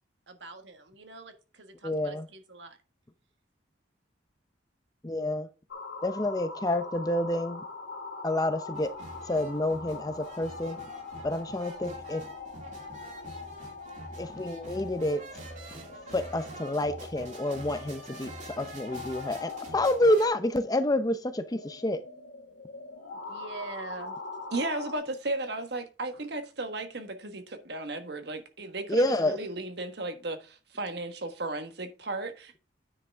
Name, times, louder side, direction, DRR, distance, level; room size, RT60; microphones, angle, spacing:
voice 1, 0.3-2.8 23.3-24.2 26.1-26.2, right 3 dB, 75° right, 1.6 m, -44 dB
voice 2, 1.8-2.2 5.0-5.5 6.0-7.6 8.2-8.9 9.2-10.8 11.2-12.2 14.2-15.2 16.1-22.0 28.9-29.4, left 1 dB, 20° left, 0.7 m, -28 dB
sound 1, 5.7-25.0, left 3 dB, 90° left, 1.9 m, -43 dB
sound 2, 8.7-20.3, right 2 dB, 40° right, 2.6 m, -46 dB
voice 3, 24.5-32.6, right 2 dB, 60° right, 1.4 m, -35 dB
9.7 x 5.9 x 3.4 m
head